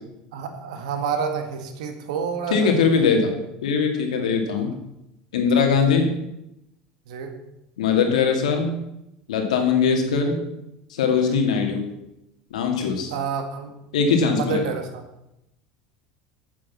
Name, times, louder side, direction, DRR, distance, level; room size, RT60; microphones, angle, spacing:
voice 1, 0.3-2.9 4.6-4.7 5.5-5.7 7.1-7.4 9.5-9.7 11.2-11.4 13.1-13.7 14.3-15.0, right 6 dB, 80° right, 6 dB, 1.9 m, -29 dB
voice 2, 2.5-4.7 5.3-6.1 7.8-8.7 9.3-10.4 10.9-11.8 12.5-13.1 13.9-14.7, left 5 dB, 90° left, 3 dB, 2.3 m, -21 dB
9.4 x 7.4 x 7.2 m, 0.87 s
supercardioid pair, 100°, 4 cm